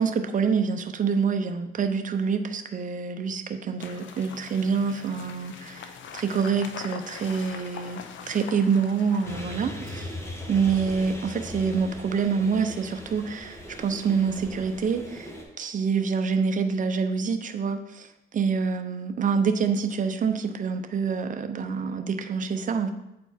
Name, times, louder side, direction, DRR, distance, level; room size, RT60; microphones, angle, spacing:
voice 1, 0.0-8.0 8.3-10.1 10.5-18.1 18.3-22.9, right 5 dB, 40° right, 7 dB, 0.7 m, -26 dB
sound 1, 3.8-9.4, left 7 dB, 70° left, 0.7 m, -42 dB
sound 2, 9.2-15.4, left 1 dB, 15° left, 1.3 m, -39 dB
8.1 x 4.3 x 4.4 m, 0.90 s
cardioid pair, 90°, 20 cm